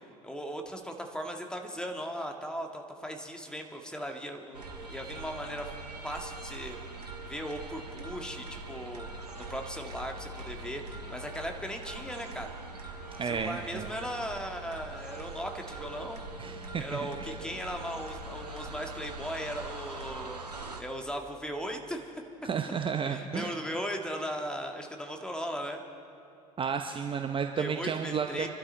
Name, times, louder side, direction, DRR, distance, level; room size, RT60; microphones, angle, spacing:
voice 1, 0.2-5.7 6.0-6.8 7.2-9.1 9.4-12.5 13.2-16.2 16.8-20.4 20.8-22.2 23.1-25.8 27.6-28.5, equal, 5° left, 3 dB, 1.8 m, -38 dB
sound 1, 4.5-20.8, right 2 dB, 85° right, 1.4 m, -42 dB
voice 2, 13.2-13.9 16.4-17.4 22.4-23.5 26.6-28.5, right 6 dB, 25° right, 6 dB, 0.8 m, -32 dB
26.0 x 12.5 x 4.5 m, 2.8 s
figure-of-eight pair, 65°, 20 cm